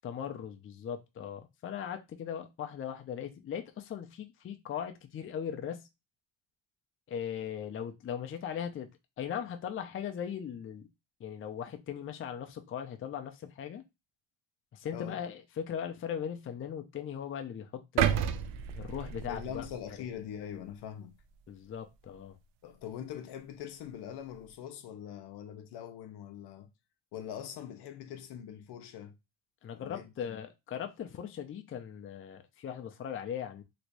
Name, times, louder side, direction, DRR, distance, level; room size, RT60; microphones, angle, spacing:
voice 1, 0.0-5.8 7.1-8.9 9.2-10.9 11.2-13.8 14.7-18.2 18.8-19.6 21.5-22.4 29.6-33.6, left 8 dB, 30° left, 0.5 m, -39 dB
sound 1, 18.0-20.1 20.6-20.8, right 9 dB, 75° right, 0.5 m, -31 dB
voice 2, 19.3-21.1 22.6-26.7 27.1-29.2 29.7-30.4, left 9 dB, 65° left, 0.7 m, -43 dB
3.1 x 3.0 x 2.6 m
supercardioid pair, 90°, 44 cm